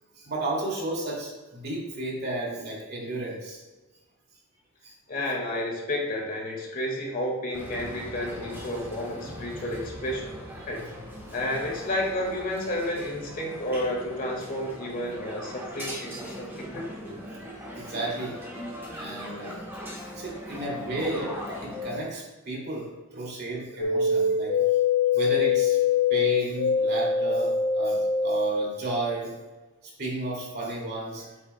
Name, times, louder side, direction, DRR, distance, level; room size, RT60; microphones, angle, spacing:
voice 1, 0.2-3.6 4.8-4.9 17.7-18.4 18.9-19.6 20.2-24.7 25.1-25.8 26.1-29.3 30.0-31.3, right 2 dB, 50° right, -4 dB, 2.5 m, -33 dB
voice 2, 5.1-10.3 10.7-10.8 11.3-17.2, left 1 dB, 45° left, -1 dB, 1.8 m, -31 dB
sound 1, 7.5-22.0, left 1 dB, 10° right, 1.6 m, -40 dB
sound 2, 23.8-28.6, left 5 dB, 75° left, 0.9 m, -23 dB
8.6 x 8.1 x 2.2 m, 1.2 s
head